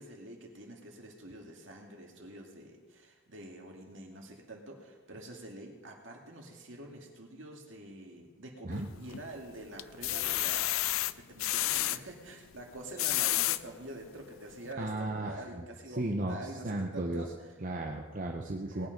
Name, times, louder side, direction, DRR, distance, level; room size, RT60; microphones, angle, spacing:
voice 1, 0.0-17.5 18.7-18.9, right 1 dB, 65° right, 1 dB, 2.3 m, -46 dB
sound 1, 8.7-9.3 9.8-12.0 12.8-13.6 14.2-14.3 14.6-14.7, left 15 dB, 90° left, 0.4 m, -30 dB
voice 2, 14.8-15.6 16.0-16.4 16.6-17.2 17.6-18.9, right 2 dB, 40° right, 1 dB, 0.9 m, -34 dB
19.0 x 8.9 x 5.3 m, 1.4 s
head